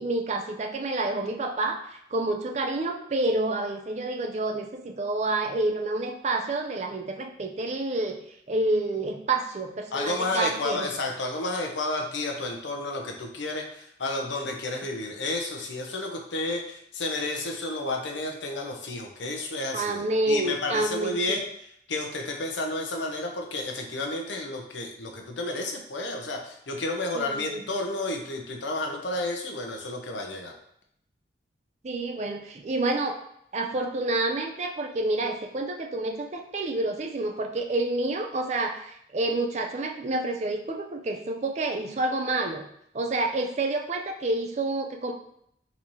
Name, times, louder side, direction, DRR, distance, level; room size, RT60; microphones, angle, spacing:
voice 1, 0.0-8.2 8.5-10.9 19.7-21.4 27.1-27.6 31.8-33.2 33.5-42.6 42.9-45.1, right 2 dB, 40° right, 4 dB, 0.4 m, -28 dB
voice 2, 9.9-20.0 20.3-21.4 21.9-30.5, left 2 dB, 90° left, 2 dB, 0.7 m, -31 dB
4.0 x 2.8 x 3.0 m, 0.71 s
head